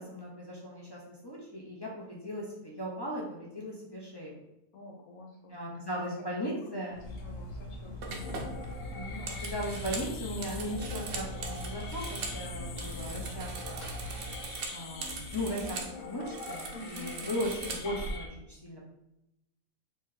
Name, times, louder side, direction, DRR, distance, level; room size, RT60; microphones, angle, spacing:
voice 1, 0.0-4.4 5.5-7.0 8.9-13.9 14.7-18.8, equal, 30° left, -4 dB, 0.4 m, -37 dB
voice 2, 4.7-5.6 5.9-6.1 6.4-6.5 7.1-8.4 16.7-17.3, left 2 dB, 85° left, 0 dB, 1.3 m, -48 dB
Cutlery silverware, 6.9-14.6, left 1 dB, 45° left, 1.2 m, -41 dB
sound 1, 7.4-7.6 8.0-12.4 12.7-15.9 16.2-18.1, right 4 dB, 70° right, 1.0 m, -41 dB
sound 2, 8.1-18.3, left 4 dB, 60° left, 0.8 m, -44 dB
3.1 x 2.7 x 3.8 m, 0.87 s
omnidirectional pair, 1.5 m